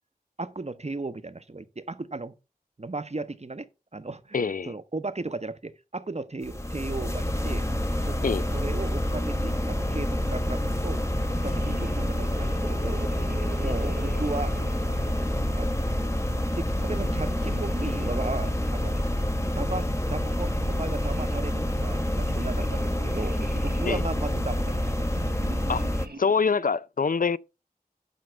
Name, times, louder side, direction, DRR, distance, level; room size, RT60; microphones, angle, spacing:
voice 1, 0.4-2.3 2.8-7.7 8.0-8.2 8.5-11.0 11.4-13.1 13.6-14.5 15.6-15.9 16.6-19.0 19.6-23.4 23.6-24.9, right 3 dB, 45° right, 0.8 m, -35 dB
voice 2, 4.3-4.7 8.2-8.5 13.6-13.7 23.9-24.0 25.7-25.9 26.2-27.4, left 5 dB, 60° left, 0.4 m, -25 dB
sound 1, 6.4-26.1, left 1 dB, 20° left, 0.9 m, -27 dB
sound 2, 11.1-15.9 16.8-19.1 19.7-26.6, right 3 dB, 90° right, 0.9 m, -43 dB
12.5 x 5.5 x 3.4 m
wide cardioid pair, 40°, 16 cm